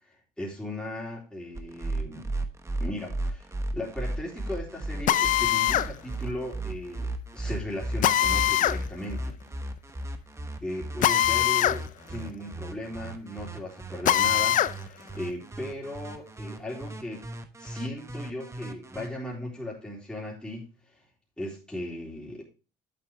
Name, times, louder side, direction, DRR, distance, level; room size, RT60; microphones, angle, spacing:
voice 1, 0.1-2.3 2.8-3.5 3.7-9.4 10.6-17.2 17.6-20.7 21.4-22.4, left 1 dB, 5° left, -4 dB, 3.7 m, -37 dB
sound 1, 1.6-19.1, right 2 dB, 15° right, 1.1 m, -35 dB
Drill, 5.1-5.9 8.0-8.8 11.0-11.8 12.1-12.2 14.0-14.7, left 12 dB, 50° left, 0.5 m, -22 dB
8.2 x 7.8 x 3.5 m, 0.33 s
cardioid pair, 110°, 17 cm